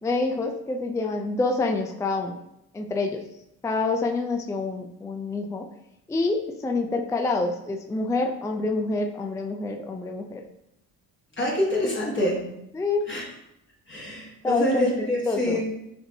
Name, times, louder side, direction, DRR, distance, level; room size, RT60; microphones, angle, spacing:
voice 1, 0.0-2.4 2.7-3.2 3.6-5.7 6.1-10.4 12.7-13.0 14.4-14.9 15.3-15.6, left 3 dB, 10° left, 3 dB, 0.4 m, -27 dB
voice 2, 11.4-12.4 13.1-13.3 13.9-15.7, left 1 dB, 30° left, -5 dB, 1.4 m, -26 dB
6.9 x 2.6 x 2.7 m, 0.84 s
supercardioid pair, 65°, 39 cm